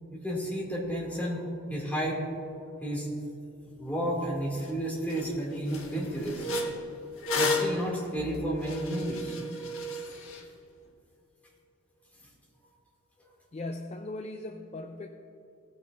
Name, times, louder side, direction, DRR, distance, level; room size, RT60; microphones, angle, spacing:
voice 1, 0.1-2.2 2.5-3.1 3.8-6.5 7.3-9.3, equal, 10° left, -4 dB, 2.3 m, -32 dB
sound 1, 4.6-4.7 5.1-5.3 5.7-10.4, left 2 dB, 70° left, 1.4 m, -33 dB
voice 2, 13.5-15.1, left 2 dB, 30° left, 5 dB, 0.4 m, -38 dB
17.5 x 9.2 x 2.5 m, 2.7 s
head